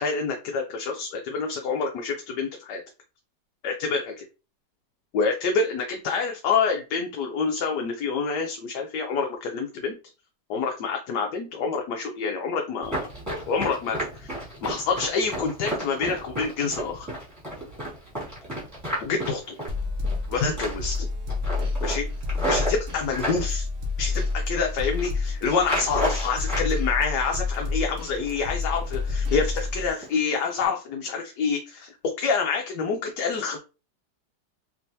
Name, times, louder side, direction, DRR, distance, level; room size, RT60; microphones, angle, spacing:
voice 1, 0.0-2.8 3.6-4.2 5.1-10.0 10.5-17.1 19.0-19.5 20.3-21.1 21.8-22.1 22.5-23.7 24.0-33.6, left 5 dB, 75° left, 2 dB, 1.2 m, -27 dB
Run, 12.8-20.2 20.5-21.0 21.3-23.4 24.0-24.6 24.8-25.1 25.6-26.7 27.0-27.8 28.2-28.4 28.8-29.1 29.4-29.6 30.0-30.2 30.5-30.7, right 1 dB, 10° right, 1.8 m, -32 dB
sound 1, 19.7-29.9, left 3 dB, 60° right, 0.6 m, -29 dB
3.4 x 3.0 x 2.7 m, 0.33 s
omnidirectional pair, 1.9 m